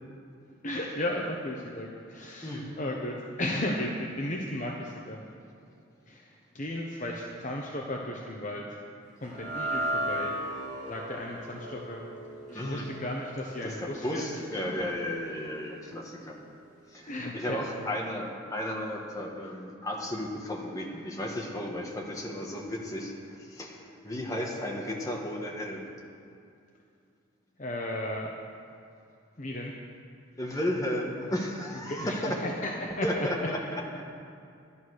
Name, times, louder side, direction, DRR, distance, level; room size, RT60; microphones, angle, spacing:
voice 1, 0.6-5.2 6.1-8.8 9.2-10.3 10.9-12.0 12.5-14.3 14.6-14.7 17.1-17.9 27.6-28.3 29.4-29.7 31.9-33.5, left 1 dB, 35° left, 0 dB, 1.0 m, -35 dB
sound 1, 9.2-15.6, right 1 dB, 35° right, 2.9 m, -36 dB
voice 2, 12.5-12.9 13.6-16.4 16.9-25.9 30.4-32.4 33.0-34.0, left 1 dB, 15° left, -1 dB, 1.5 m, -34 dB
11.5 x 11.5 x 6.4 m, 2.5 s
head